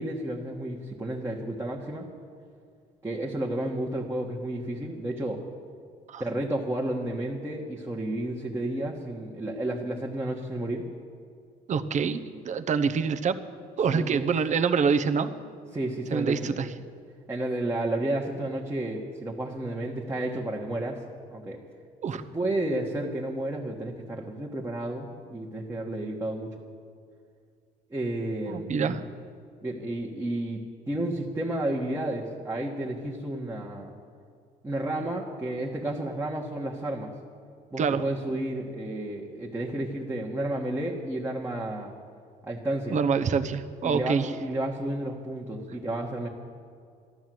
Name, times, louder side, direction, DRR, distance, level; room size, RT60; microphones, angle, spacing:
voice 1, 0.0-2.1 3.0-5.4 6.2-10.9 13.9-14.3 15.7-16.6 17.3-21.0 21.3-21.6 22.3-26.5 27.9-29.0 29.6-33.9 34.6-37.1 37.7-41.9 42.4-43.0 43.8-46.3, right 1 dB, 15° right, -2 dB, 1.5 m, -31 dB
voice 2, 11.7-12.2 12.4-13.4 13.8-15.3 16.1-16.7 22.0-22.2 28.5-29.0 37.8-38.0 42.9-44.3, right 6 dB, 45° right, 10 dB, 0.9 m, -25 dB
12.5 x 12.5 x 7.7 m, 2.3 s
cardioid pair, 110°, 17 cm